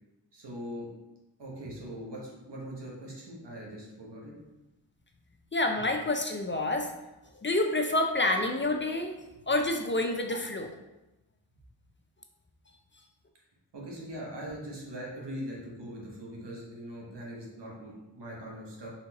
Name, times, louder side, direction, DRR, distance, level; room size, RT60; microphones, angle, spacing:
voice 1, 0.3-0.9 1.4-4.3 13.7-18.9, equal, 70° right, -3 dB, 1.4 m, -41 dB
voice 2, 5.5-6.9 7.3-9.1 9.5-10.7, left 2 dB, 25° left, 3 dB, 0.5 m, -28 dB
4.3 x 3.6 x 2.9 m, 0.98 s
cardioid pair, 45°, 43 cm